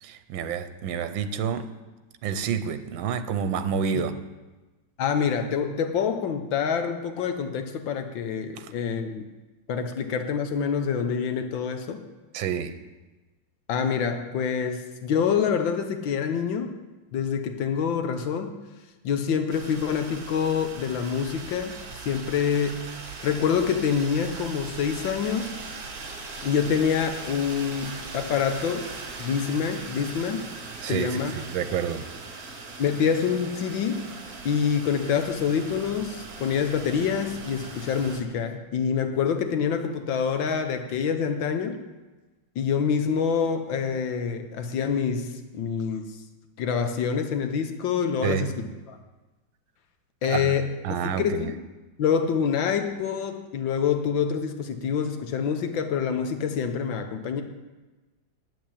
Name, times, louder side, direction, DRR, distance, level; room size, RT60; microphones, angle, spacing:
voice 1, 0.0-1.6 2.2-4.1 8.6-8.7 12.3-12.7 30.8-32.1 48.2-48.5 50.2-50.5 50.8-51.5, right 7 dB, 80° right, 11 dB, 1.5 m, -29 dB
voice 2, 5.0-9.3 9.7-12.0 13.7-16.7 17.1-18.5 19.0-21.7 22.0-22.9 23.2-25.5 26.4-28.9 29.2-30.5 30.9-31.3 32.8-34.0 34.4-41.8 42.6-46.1 46.6-49.0 50.2-50.7 51.2-51.6 52.0-57.4, left 7 dB, 80° left, 6 dB, 1.6 m, -26 dB
sound 1, 19.5-38.2, right 4 dB, 50° right, 1.9 m, -40 dB
9.1 x 8.1 x 8.4 m, 1.2 s
omnidirectional pair, 2.1 m